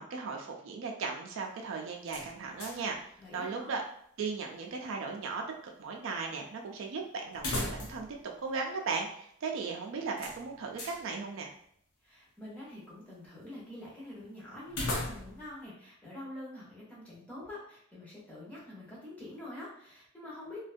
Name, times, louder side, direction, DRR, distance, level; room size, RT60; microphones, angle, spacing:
voice 1, 0.0-3.0 3.3-3.8 4.2-5.4 5.8-8.1 8.4-11.5, right 4 dB, 65° right, 1 dB, 0.4 m, -36 dB
sound 1, 2.1-3.0 3.3-3.4 7.3-8.2 8.5-8.6 10.2-11.0 14.7-15.5, left 1 dB, 90° left, 0.7 m, -37 dB
voice 2, 3.2-3.7 12.0-20.6, left 1 dB, 5° left, -7 dB, 0.8 m, -46 dB
2.5 x 2.2 x 2.5 m, 0.66 s
head